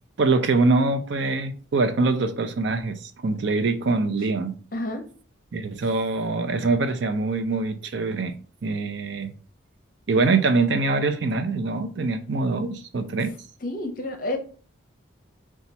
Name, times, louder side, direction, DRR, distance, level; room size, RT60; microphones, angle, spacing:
voice 1, 0.2-4.6 5.5-8.4 8.6-9.3 10.1-13.3, right 3 dB, 60° right, 0.5 m, -24 dB
voice 2, 4.7-5.0 13.6-14.4, left 2 dB, 45° left, 0.7 m, -29 dB
4.2 x 2.3 x 4.0 m
head